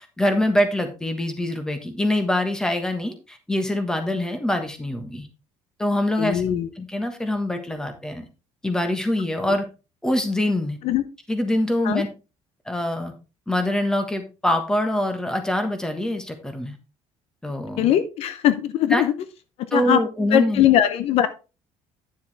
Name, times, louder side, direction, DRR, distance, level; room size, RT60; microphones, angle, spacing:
voice 1, 0.0-5.3 5.8-8.3 8.6-9.7 10.0-10.8 11.3-12.1 12.7-13.1 13.5-16.8 17.4-17.9 18.9-19.0 19.7-20.6, left 1 dB, 5° left, 7 dB, 1.3 m, -24 dB
voice 2, 6.2-6.7 10.8-11.0 11.8-12.0 17.8-19.1 19.7-20.0 20.3-21.3, left 11 dB, 55° left, 12 dB, 0.7 m, -20 dB
10.0 x 6.9 x 3.4 m, 0.31 s
cardioid pair, 165°, 12 cm